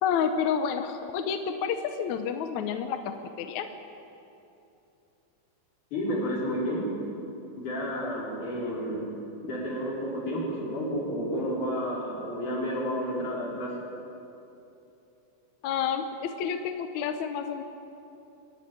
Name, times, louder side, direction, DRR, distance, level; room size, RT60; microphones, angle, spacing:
voice 1, 0.0-3.0 3.4-3.7 15.6-17.6, left 7 dB, 70° left, 7 dB, 1.8 m, -29 dB
voice 2, 5.9-6.9 7.6-13.7, equal, 55° left, -4 dB, 5.8 m, -31 dB
24.0 x 12.5 x 9.5 m, 2.9 s
omnidirectional pair, 4.3 m